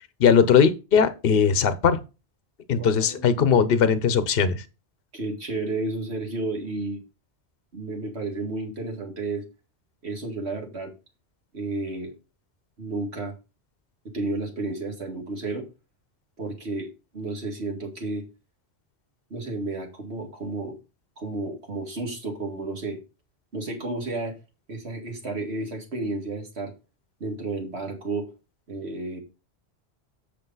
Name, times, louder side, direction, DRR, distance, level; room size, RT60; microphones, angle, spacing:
voice 1, 0.2-2.0 2.7-4.6, left 6 dB, 60° left, 1.0 m, -19 dB
voice 2, 2.7-3.7 5.1-7.0 7.7-9.4 10.0-10.9 11.5-12.1 12.8-13.3 14.0-15.7 16.4-16.9 17.1-18.2 19.3-20.8 21.2-23.0 23.5-24.4 24.7-26.7 27.2-28.3 28.7-29.2, right 2 dB, 75° right, 2.5 m, -32 dB
7.8 x 6.7 x 4.0 m
omnidirectional pair, 1.1 m